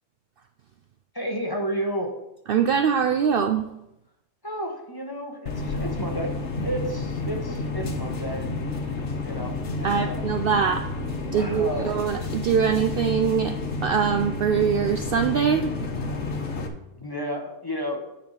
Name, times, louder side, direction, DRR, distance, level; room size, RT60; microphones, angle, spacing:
voice 1, 1.1-2.1 4.4-6.3 6.6-8.5 9.2-10.3 11.3-12.1 16.9-18.0, equal, 20° left, 1 dB, 1.0 m, -32 dB
voice 2, 2.5-3.7 9.8-10.9 11.3-13.6 13.8-15.7, right 7 dB, 60° right, 7 dB, 0.6 m, -23 dB
sound 1, 5.5-16.7, left 2 dB, 65° left, 1.2 m, -30 dB
9.5 x 4.3 x 5.6 m, 0.87 s
omnidirectional pair, 1.3 m